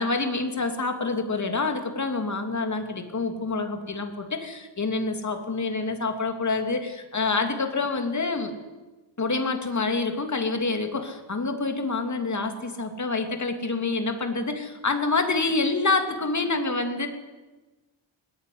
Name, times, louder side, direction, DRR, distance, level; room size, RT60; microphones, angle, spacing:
voice 1, 0.0-8.5 9.2-17.1, left 3 dB, 35° left, 5 dB, 3.0 m, -27 dB
20.5 x 20.0 x 9.6 m, 1.2 s
wide cardioid pair, 175°, 48 cm